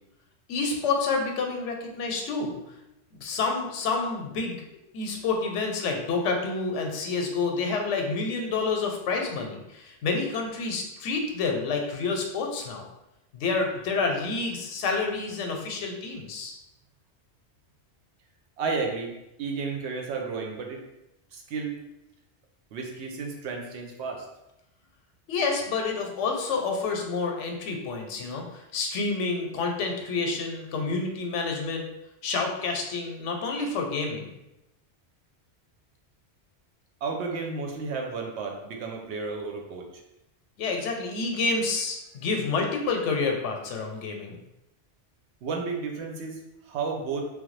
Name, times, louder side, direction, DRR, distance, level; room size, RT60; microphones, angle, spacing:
voice 1, 0.5-2.6 3.2-4.6 4.9-12.9 13.3-16.6 25.3-31.8 32.2-34.4 40.6-44.4, left 4 dB, 85° left, 2 dB, 0.9 m, -28 dB
voice 2, 18.6-19.1 19.4-20.8 21.3-21.7 22.7-24.3 37.0-39.9 45.4-46.4 46.6-47.3, right 4 dB, 70° right, 2 dB, 0.8 m, -32 dB
3.1 x 2.0 x 3.1 m, 0.91 s
omnidirectional pair, 1.2 m